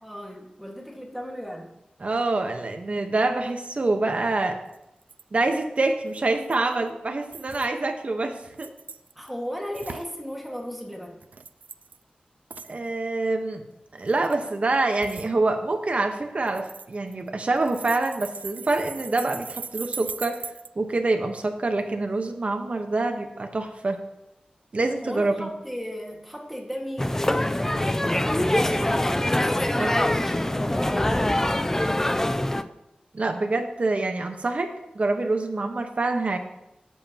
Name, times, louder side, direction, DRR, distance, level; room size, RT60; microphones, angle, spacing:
voice 1, 0.0-1.7 9.2-11.2 25.0-31.5, equal, 5° right, 0 dB, 1.9 m, -36 dB
voice 2, 2.0-4.6 5.3-8.7 12.7-13.6 13.9-20.4 20.8-24.0 24.7-25.5 29.8-29.9 33.1-36.4, right 2 dB, 50° right, 5 dB, 1.2 m, -26 dB
sound 1, 4.7-4.8 5.0-5.2 6.1-6.7 7.3-7.7 8.4-9.3 9.7-10.1 11.2-12.0 12.5-12.8 14.0-14.4 15.0-15.3 16.5-17.3 17.6-20.7, right 5 dB, 80° right, 0.4 m, -39 dB
sound 2, 27.0-32.6, left 1 dB, 15° left, 0.5 m, -24 dB
18.0 x 7.6 x 3.0 m, 0.88 s
wide cardioid pair, 85°, 3 cm